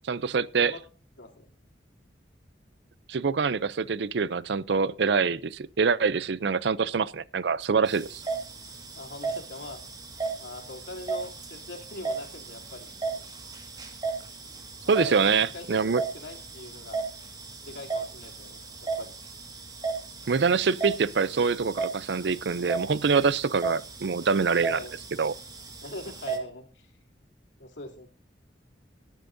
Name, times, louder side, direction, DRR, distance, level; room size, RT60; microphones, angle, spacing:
voice 1, 0.1-0.7 3.1-8.2 14.9-16.0 20.3-24.8 25.2-25.3, right 5 dB, 65° right, 0.5 m, -25 dB
voice 2, 1.2-1.5 9.0-9.8 10.4-12.9 14.8-15.8 16.1-17.1 17.6-19.1 24.7-24.9 25.8-26.9 27.6-28.1, left 2 dB, 80° left, 3.1 m, -42 dB
sound 1, 7.9-26.4, right 4 dB, 20° right, 1.8 m, -36 dB
19.0 x 10.0 x 2.6 m
head